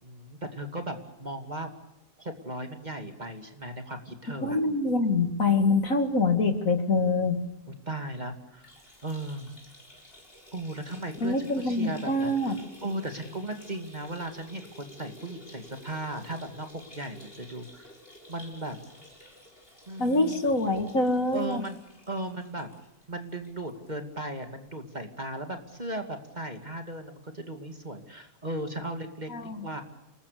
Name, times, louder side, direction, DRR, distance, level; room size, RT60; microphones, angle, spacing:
voice 1, 0.0-1.7 2.2-4.6 7.7-8.7 9.0-9.5 10.5-17.9 18.3-18.8 19.9-20.4 21.3-21.8 22.1-22.7 23.1-29.3 29.6-29.8, right 1 dB, 25° right, 6 dB, 2.6 m, -37 dB
voice 2, 4.4-7.4 11.2-12.6 20.0-21.6 29.3-29.6, left 2 dB, 60° left, 8 dB, 2.6 m, -25 dB
sound 1, 8.5-23.9 24.3-24.4 24.7-24.8 25.8-25.9, left 1 dB, 35° left, 6.9 m, -52 dB
28.5 x 20.5 x 6.9 m, 0.86 s
omnidirectional pair, 1.7 m